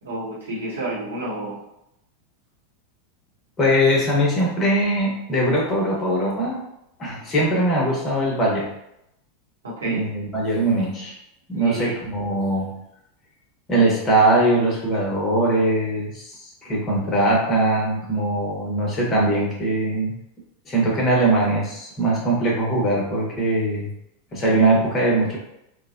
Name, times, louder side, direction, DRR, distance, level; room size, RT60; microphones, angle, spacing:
voice 1, 0.0-1.6 9.6-10.0 11.5-12.0, right 1 dB, 80° right, -6 dB, 1.0 m, -30 dB
voice 2, 3.6-6.6 7.0-8.7 9.8-11.2 11.5-12.7 13.7-20.1 20.7-23.9 24.3-25.4, right 1 dB, 25° left, -3 dB, 1.0 m, -21 dB
3.2 x 2.1 x 2.5 m, 0.81 s
figure-of-eight pair, 90°, 0 cm